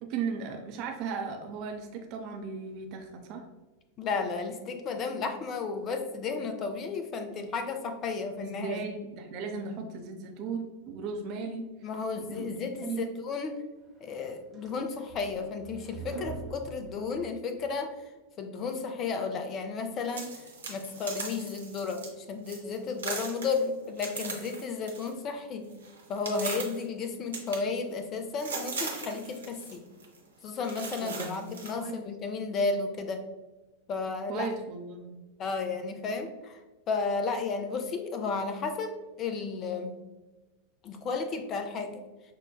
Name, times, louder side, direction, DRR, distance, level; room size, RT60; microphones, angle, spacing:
voice 1, 0.0-3.5 8.4-11.7 12.3-12.5 12.8-13.1 31.0-32.0 34.3-35.1, right 5 dB, 40° right, 3 dB, 0.5 m, -36 dB
voice 2, 4.0-8.9 11.8-13.6 14.0-18.0 18.4-20.3 20.7-25.7 26.1-29.9 30.4-33.3 33.9-34.5 35.4-36.6 36.9-40.0 40.8-42.0, left 4 dB, 30° left, 6 dB, 0.5 m, -33 dB
sound 1, 14.1-17.7, right 4 dB, 10° right, 0.8 m, -44 dB
sound 2, 20.0-22.1 22.4-22.7 23.0-25.2 25.5-26.8 27.3-28.1 28.4-29.8 30.0-30.2 30.6-31.7, right 4 dB, 70° right, 0.9 m, -39 dB
6.2 x 2.2 x 2.3 m, 1.2 s
figure-of-eight pair, 90°, 0 cm